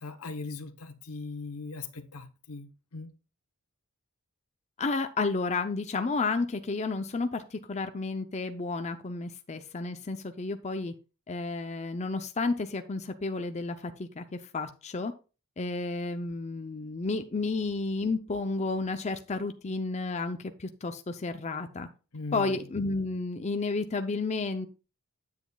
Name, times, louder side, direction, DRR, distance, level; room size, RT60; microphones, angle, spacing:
voice 1, 0.0-3.1 22.1-22.6, left 3 dB, 80° left, 1.0 m, -39 dB
voice 2, 4.8-10.9 11.3-15.1 15.6-21.9 22.3-24.7, left 3 dB, 30° left, 0.5 m, -31 dB
9.4 x 8.1 x 2.3 m
head